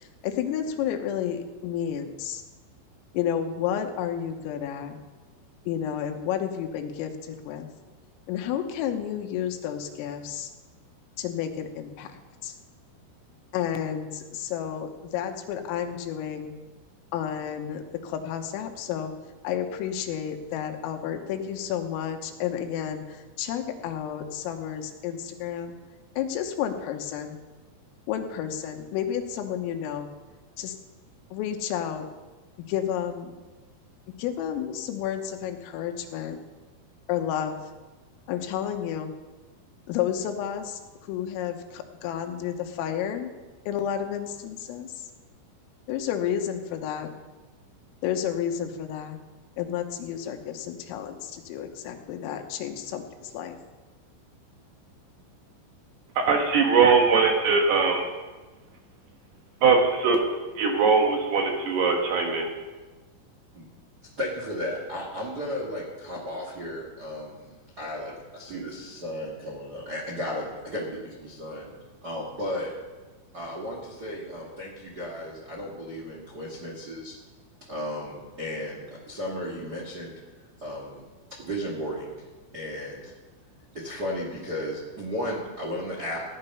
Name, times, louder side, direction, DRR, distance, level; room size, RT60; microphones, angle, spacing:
voice 1, 0.0-2.4 3.1-5.0 5.7-7.7 8.3-10.5 11.2-12.1 12.4-12.5 13.5-16.5 17.1-19.1 19.4-25.7 26.2-27.4 28.1-30.1 30.6-30.8 31.3-32.1 32.7-33.3 34.2-36.4 37.1-37.6 38.3-39.1 39.9-43.3 43.7-45.1 45.9-47.1 48.0-49.2 49.6-53.6, left 9 dB, 85° left, 5 dB, 3.7 m, -31 dB
voice 2, 56.3-58.0 59.6-60.2 60.6-62.5, right 5 dB, 65° right, 2 dB, 2.8 m, -21 dB
voice 3, 64.2-71.7 72.0-72.7 73.3-77.2 77.7-80.1 80.6-82.1 82.5-83.1 83.7-86.2, left 1 dB, 85° right, -3 dB, 0.9 m, -34 dB
16.0 x 11.0 x 5.6 m, 1.2 s
omnidirectional pair, 5.9 m